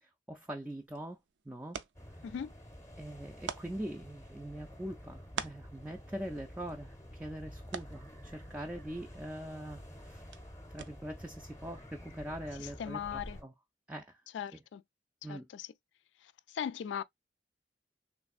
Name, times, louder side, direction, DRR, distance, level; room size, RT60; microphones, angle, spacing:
voice 1, 0.0-1.2 1.5-1.8 2.1-2.2 3.0-10.2 10.7-13.5 13.9-14.2 14.5-14.6 15.2-15.5, right 1 dB, 10° right, 0.3 m, -43 dB
sound 1, 0.6-11.3, right 6 dB, 85° right, 0.4 m, -49 dB
sound 2, 1.9-13.4, equal, 20° left, 0.7 m, -50 dB
voice 2, 12.6-13.4 14.3-14.8 15.3-15.7 16.5-17.0, left 8 dB, 85° left, 0.3 m, -38 dB
3.4 x 3.2 x 2.4 m
head